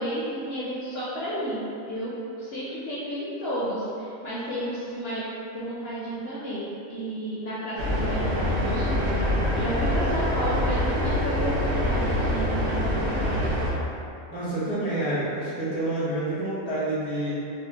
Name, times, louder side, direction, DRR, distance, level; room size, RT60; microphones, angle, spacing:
voice 1, 0.0-2.1 2.4-5.2 5.5-13.4, right 1 dB, 60° left, -9 dB, 0.7 m, -32 dB
sound 1, 7.8-13.7, left 1 dB, 60° right, 0.9 m, -25 dB
voice 2, 14.3-17.3, right 1 dB, 5° right, -11 dB, 0.5 m, -28 dB
3.5 x 2.1 x 2.8 m, 2.6 s
omnidirectional pair, 1.4 m